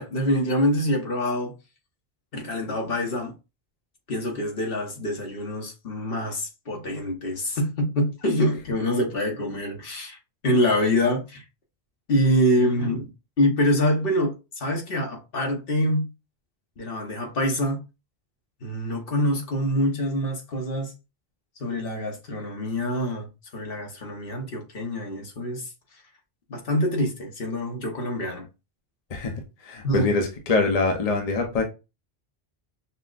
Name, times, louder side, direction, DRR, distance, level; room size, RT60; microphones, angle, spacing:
voice 1, 0.0-1.5 2.3-3.3 4.1-10.2 10.4-11.4 12.1-13.1 13.4-16.0 16.8-17.8 18.6-20.9 21.6-25.7 26.5-28.5 29.8-30.1, equal, 60° left, 1.2 m, -25 dB
voice 2, 29.6-31.6, left 3 dB, 45° left, 0.7 m, -24 dB
5.6 x 2.0 x 2.4 m
omnidirectional pair, 1.1 m